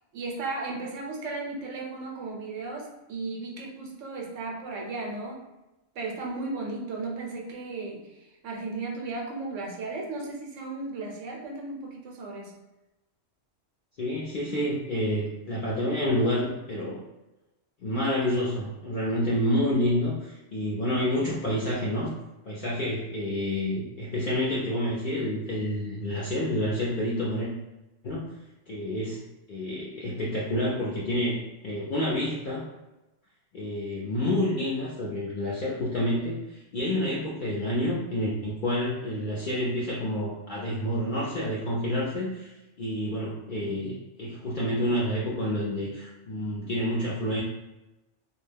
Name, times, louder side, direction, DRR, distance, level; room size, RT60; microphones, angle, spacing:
voice 1, 0.1-5.4 5.9-12.5, right 3 dB, 80° right, -1 dB, 1.0 m, -35 dB
voice 2, 14.0-17.0 17.8-22.1 22.4-27.5 28.0-28.2 28.7-29.2 29.5-32.7 33.5-47.4, left 1 dB, 60° left, -6 dB, 0.5 m, -28 dB
2.4 x 2.1 x 3.2 m, 1.0 s
omnidirectional pair, 1.3 m